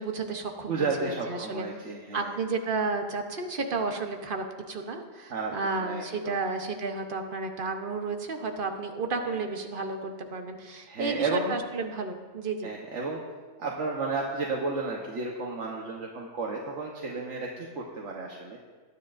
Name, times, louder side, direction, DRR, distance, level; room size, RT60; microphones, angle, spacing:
voice 1, 0.0-1.7 2.1-12.7, right 3 dB, 50° right, 5 dB, 1.1 m, -32 dB
voice 2, 0.7-2.4 5.3-5.5 5.8-6.4 9.3-9.4 10.9-11.5 12.6-13.2 13.6-18.6, right 3 dB, 85° right, -1 dB, 1.4 m, -32 dB
20.5 x 9.8 x 2.6 m, 1.5 s
omnidirectional pair, 1.2 m